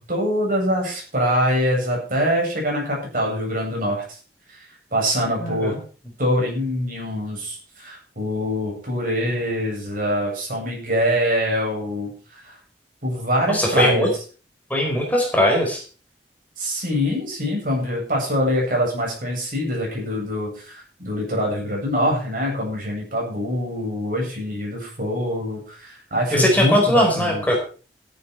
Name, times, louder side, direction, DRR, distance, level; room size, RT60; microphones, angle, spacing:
voice 1, 0.1-4.0 4.9-5.7 6.2-12.1 12.4-12.5 13.0-14.1 16.6-27.4, equal, 50° right, -1 dB, 7.9 m, -24 dB
voice 2, 5.4-5.8 13.5-14.1 14.7-15.8 26.3-27.6, equal, 10° left, 0 dB, 4.8 m, -20 dB
13.0 x 12.5 x 4.6 m, 0.38 s
head